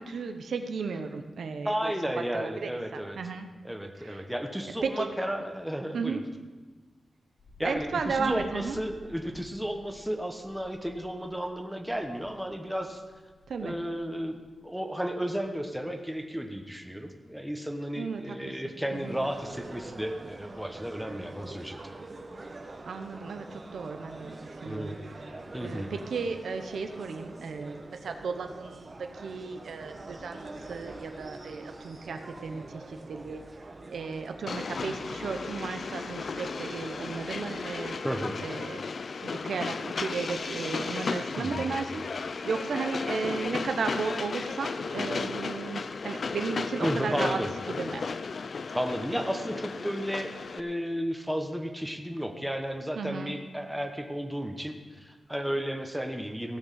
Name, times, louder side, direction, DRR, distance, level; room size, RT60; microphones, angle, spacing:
voice 1, 0.0-1.9 2.3-3.5 4.0-4.2 4.8-5.2 5.9-6.2 7.6-8.8 13.5-13.7 18.0-18.2 18.9-19.3 22.8-25.3 25.6-33.4 33.9-38.0 38.4-38.8 39.2-42.0 42.5-47.4 47.8-48.0 53.0-53.3, right 5 dB, 85° right, 6 dB, 0.9 m, -34 dB
voice 2, 1.6-3.2 3.6-6.2 7.6-13.0 13.6-21.8 24.6-25.0 25.5-25.9 38.0-38.4 40.8-41.7 45.7-45.9 46.8-47.5 48.7-56.6, equal, 5° right, 4 dB, 1.2 m, -33 dB
sound 1, 7.4-14.5 14.9-15.7 16.0-16.2 16.5-16.6 18.7-18.8 19.1-19.2 19.4-19.9, left 1 dB, 80° left, 3.8 m, -54 dB
sound 2, 18.9-38.3, right 2 dB, 35° right, 1.2 m, -45 dB
Train, 34.5-50.6, left 4 dB, 55° left, 0.5 m, -34 dB
16.0 x 6.3 x 7.6 m, 1.3 s
wide cardioid pair, 135°, 0 cm